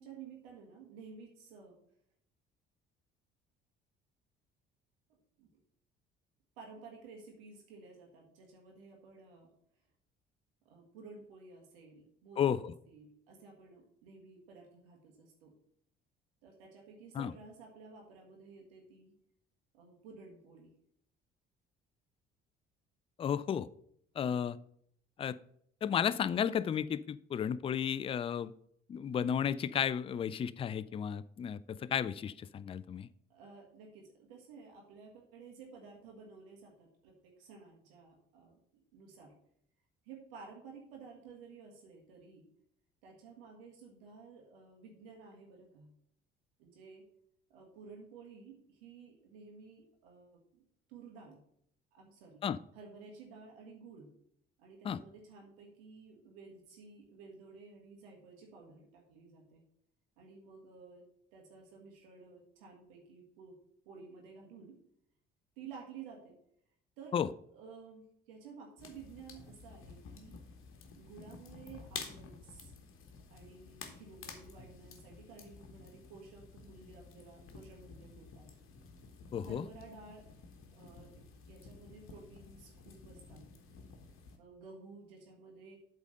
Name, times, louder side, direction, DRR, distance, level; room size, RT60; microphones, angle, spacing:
voice 1, 0.0-1.8 5.1-5.5 6.6-9.5 10.6-12.5 12.9-15.5 16.4-19.1 19.7-20.7 24.2-24.4 33.3-38.6 38.9-39.3 40.0-42.5 43.0-45.9 46.6-47.0 47.5-50.6 50.9-51.4 51.9-52.4 52.7-54.1 54.6-59.6 60.2-61.1 61.3-63.5 63.8-64.8 65.6-66.4 67.0-70.4 71.0-72.8 73.3-78.5 79.4-80.2 80.7-83.5 84.4-85.8, right 5 dB, 70° right, 0 dB, 1.6 m, -53 dB
voice 2, 12.4-12.7 17.1-17.3 23.2-23.7 24.2-24.6 25.2-25.4 25.8-28.5 28.9-33.1 52.4-52.6 54.8-55.0 67.1-67.3 79.3-79.7, left 8 dB, 20° left, 17 dB, 0.3 m, -33 dB
sound 1, 68.8-84.4, left 5 dB, 45° left, 1.4 m, -51 dB
8.1 x 3.7 x 6.5 m, 0.68 s
figure-of-eight pair, 50°, 30 cm